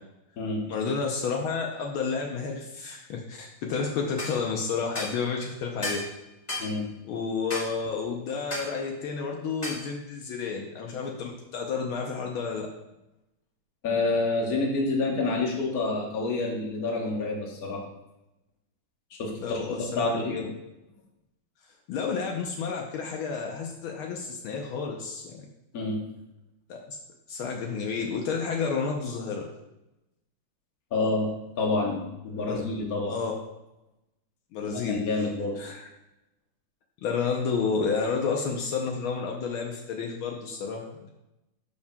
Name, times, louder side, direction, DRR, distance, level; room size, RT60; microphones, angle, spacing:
voice 1, 0.7-6.0 7.1-12.7 19.4-20.4 21.9-25.5 26.7-27.0 27.3-29.5 32.5-32.6 33.1-33.3 34.5-35.0 35.6-35.8 37.0-41.1, left 5 dB, 75° left, 1 dB, 1.6 m, -31 dB
sound 1, 4.2-4.4 4.9-5.2 5.8-6.1 6.5-6.7 7.5-7.7 8.5-8.7 9.6-9.8, left 1 dB, 20° left, 1.4 m, -33 dB
voice 2, 13.8-17.8 19.1-20.4 25.7-26.0 30.9-33.2 34.6-35.6, left 3 dB, 45° left, 0 dB, 1.5 m, -28 dB
12.0 x 5.4 x 2.3 m, 0.93 s
omnidirectional pair, 2.4 m